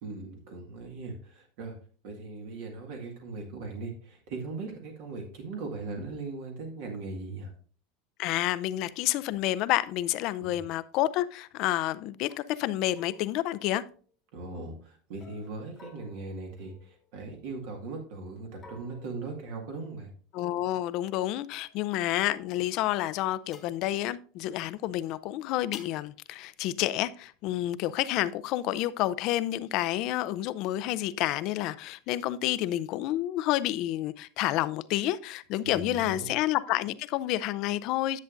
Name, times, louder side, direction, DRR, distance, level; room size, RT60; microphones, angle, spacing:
voice 1, 0.0-1.7 2.0-7.5 10.4-10.6 14.3-20.1 35.6-36.3, right 3 dB, 70° right, 1.9 m, -39 dB
voice 2, 8.2-13.8 20.3-38.2, left 14 dB, 50° left, 0.4 m, -29 dB
sound 1, 12.3-12.5 12.9-14.3 15.2-17.4 18.6-20.0 21.5-22.8 23.5-23.8 25.7-26.1, left 5 dB, 20° left, 1.0 m, -54 dB
10.5 x 7.4 x 2.6 m
supercardioid pair, 150°, 0 cm